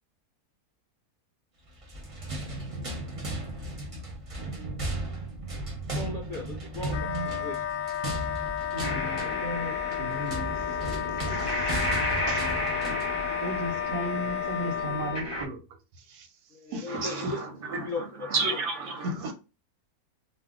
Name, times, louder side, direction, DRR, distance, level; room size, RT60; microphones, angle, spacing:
sound 1, 1.8-13.2, right 1 dB, 35° right, 0.5 m, -36 dB
voice 1, 5.9-7.1 7.4-7.6 16.5-18.6, left 3 dB, 55° left, 0.5 m, -37 dB
Wind instrument woodwind instrument, 6.9-15.2, left 9 dB, 70° left, 0.9 m, -32 dB
voice 2, 8.7-10.5 11.3-11.8 12.0-12.5 12.9-13.0 13.4-15.6 16.1-16.3 16.7-17.3 19.0-19.3, right 1 dB, 85° right, 1.1 m, -36 dB
sound 2, 8.8-15.4, left 1 dB, 25° left, 0.9 m, -33 dB
voice 3, 16.9-19.3, right 4 dB, 65° right, 0.8 m, -32 dB
2.6 x 2.1 x 3.5 m
omnidirectional pair, 1.6 m